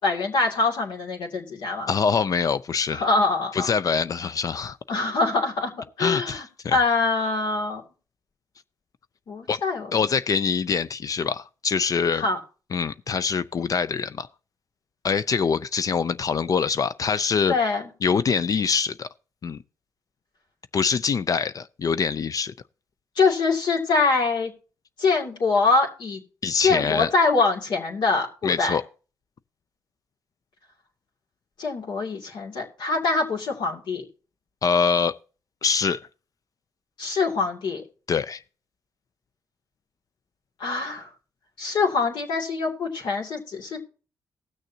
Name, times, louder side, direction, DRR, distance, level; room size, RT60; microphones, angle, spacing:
voice 1, 0.0-1.9 2.9-3.7 4.9-5.7 6.0-7.8 9.3-9.9 12.1-12.4 17.5-17.9 23.1-24.5 25.0-26.2 26.6-28.8 31.6-34.1 37.0-37.8 40.6-41.1 41.6-43.8, left 3 dB, 70° left, 2.6 m, -24 dB
voice 2, 1.9-3.0 3.5-4.8 6.0-6.8 9.5-9.6 9.9-12.2 12.7-14.3 15.0-17.5 18.0-19.1 19.4-19.6 20.7-22.5 26.4-27.1 28.4-28.8 34.6-35.1 35.6-36.0 38.1-38.4, left 6 dB, 45° left, 0.5 m, -24 dB
19.0 x 6.4 x 2.8 m
cardioid pair, 80°, 8 cm